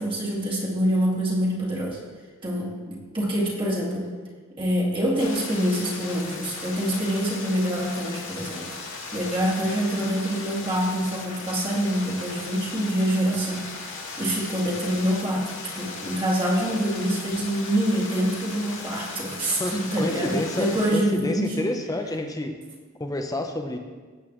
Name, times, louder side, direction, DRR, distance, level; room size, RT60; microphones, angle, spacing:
voice 1, 0.0-2.0 2.4-4.1 4.6-8.7 9.1-13.7 14.2-21.7, equal, 25° right, -5 dB, 2.3 m, -25 dB
sound 1, 5.2-20.9, left 4 dB, 65° left, 2.1 m, -37 dB
voice 2, 19.5-22.6 23.0-23.8, left 1 dB, 15° left, 5 dB, 0.8 m, -29 dB
17.0 x 8.3 x 3.1 m, 1.4 s
head